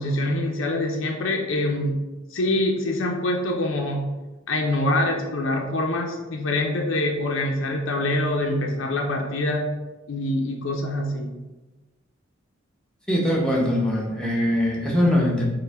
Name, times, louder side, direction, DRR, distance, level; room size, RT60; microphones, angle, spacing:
voice 1, 0.0-2.0 2.3-4.1 4.5-9.7 10.1-11.4, left 1 dB, 80° left, 1 dB, 0.5 m, -25 dB
voice 2, 13.1-15.5, left 1 dB, 5° left, -4 dB, 0.8 m, -22 dB
5.4 x 2.2 x 3.4 m, 1.1 s
head